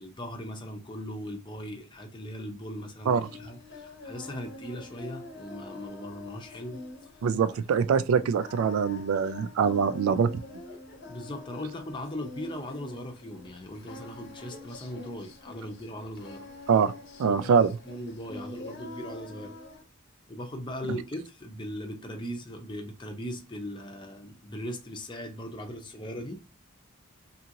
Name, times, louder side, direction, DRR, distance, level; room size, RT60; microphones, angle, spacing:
voice 1, 0.0-6.8 8.1-8.3 11.1-16.5 17.2-19.6 20.3-26.4, equal, 20° left, 0.6 m, -39 dB
Singing, 3.2-19.8, left 3 dB, 55° left, 0.7 m, -45 dB
voice 2, 7.2-10.4 16.7-16.9 17.2-17.8, right 6 dB, 85° right, 0.3 m, -24 dB
2.9 x 2.7 x 2.5 m
head